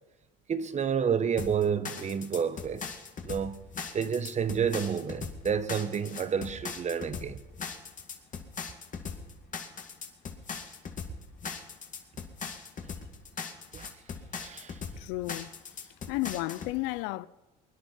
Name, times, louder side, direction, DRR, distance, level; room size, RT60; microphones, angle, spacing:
voice 1, 0.5-2.8 3.2-3.6 3.9-7.4 13.7-13.9 14.4-14.8, right 7 dB, 35° right, 1.1 m, -30 dB
sound 1, 1.4-16.7, left 6 dB, 40° left, 2.3 m, -40 dB
voice 2, 15.0-15.5 15.8-17.3, left 19 dB, 75° left, 0.5 m, -33 dB
23.0 x 10.0 x 5.7 m
supercardioid pair, 80°, 20 cm